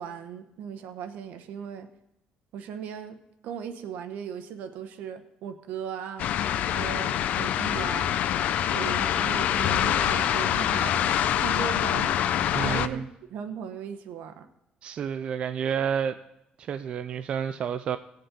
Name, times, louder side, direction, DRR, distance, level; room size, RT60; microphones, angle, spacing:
voice 1, 0.0-1.9 2.5-3.2 3.4-6.3 6.7-8.1 8.7-11.0 11.4-13.0 13.3-14.5, right 7 dB, 75° right, 8 dB, 1.0 m, -37 dB
sound 1, 6.2-12.9, left 10 dB, 55° left, 0.4 m, -25 dB
voice 2, 12.5-13.0 14.8-16.1 16.6-18.0, right 7 dB, 40° right, 9 dB, 0.3 m, -30 dB
17.0 x 7.7 x 3.8 m, 0.86 s
cardioid pair, 175°, 3 cm